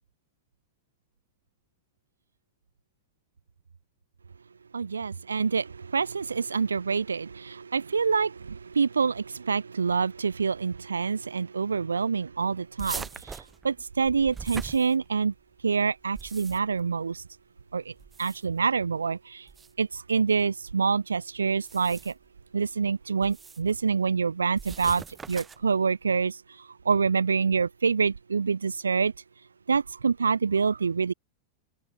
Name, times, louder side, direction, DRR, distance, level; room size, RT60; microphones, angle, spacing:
voice 1, 4.7-15.3 15.6-17.2 17.7-17.9 18.2-19.5 19.8-22.1 22.5-29.1 29.7-31.1, right 5 dB, 75° right, 1.5 m, -26 dB
sound 1, 12.8-15.4 16.0-16.8 18.0-18.6 19.5-19.7 21.5-22.3 23.2-23.7 24.6-25.7, right 5 dB, 15° right, 4.2 m, -41 dB
figure-of-eight pair, 90°, 0 cm